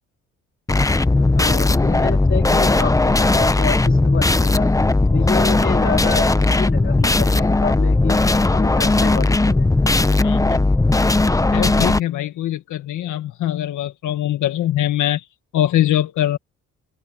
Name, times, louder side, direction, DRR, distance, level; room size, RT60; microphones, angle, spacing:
Chromatic Progressions, 0.7-12.0, left 2 dB, 10° left, 0.8 m, -17 dB
voice 1, 1.2-4.7 5.1-8.2 8.5-9.7, left 6 dB, 40° left, 3.5 m, -28 dB
voice 2, 10.2-10.7 11.5-15.2 15.5-16.4, left 12 dB, 80° left, 1.7 m, -22 dB
open air
cardioid pair, 90°, 30 cm